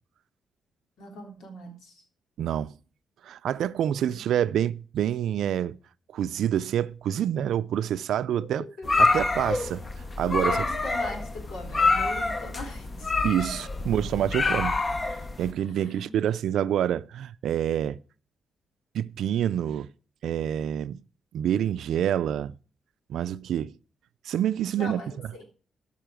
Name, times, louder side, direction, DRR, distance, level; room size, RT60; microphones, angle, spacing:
voice 1, 1.0-2.0 4.1-4.4 8.4-9.4 10.2-13.1 15.7-16.1 24.8-25.4, left 2 dB, 85° left, 3.5 m, -40 dB
voice 2, 2.4-2.8 3.2-5.8 6.1-8.6 9.0-9.9 10.2-10.5 13.2-14.8 15.4-18.0 18.9-19.9 20.2-21.0 21.3-22.5 23.1-23.7 24.2-25.0, right 10 dB, 80° right, 0.4 m, -27 dB
sound 1, 8.8-15.5, left 3 dB, 25° left, 0.7 m, -26 dB
14.0 x 5.6 x 5.0 m
cardioid pair, 130°, 0 cm